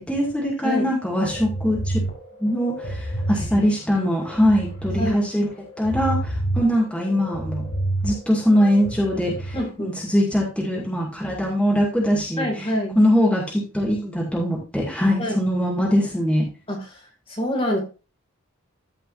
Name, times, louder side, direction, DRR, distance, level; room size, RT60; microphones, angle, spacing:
voice 1, 0.0-2.0 2.4-5.5 5.8-7.6 8.0-12.7 13.0-16.4, equal, 5° left, -3 dB, 2.2 m, -22 dB
sound 1, 1.0-9.6, right 1 dB, 85° left, 4.4 m, -29 dB
voice 2, 3.4-3.7 4.0-4.1 5.0-5.2 9.5-10.0 12.4-13.0 15.2-15.4 16.7-17.0 17.3-17.8, equal, 25° left, 0 dB, 2.4 m, -26 dB
14.5 x 5.4 x 2.6 m, 0.31 s
head